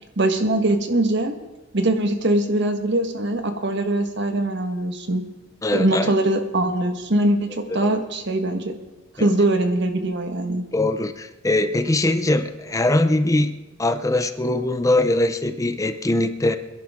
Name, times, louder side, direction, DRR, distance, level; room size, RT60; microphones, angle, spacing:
voice 1, 0.2-1.3 1.7-5.2 5.7-8.8 9.1-10.6, right 1 dB, 65° right, 6 dB, 1.4 m, -22 dB
voice 2, 5.6-6.1 7.7-8.0 9.2-9.3 10.7-13.5 13.8-16.6, left 2 dB, 15° left, 10 dB, 0.6 m, -21 dB
26.0 x 11.0 x 3.7 m, 1.1 s
head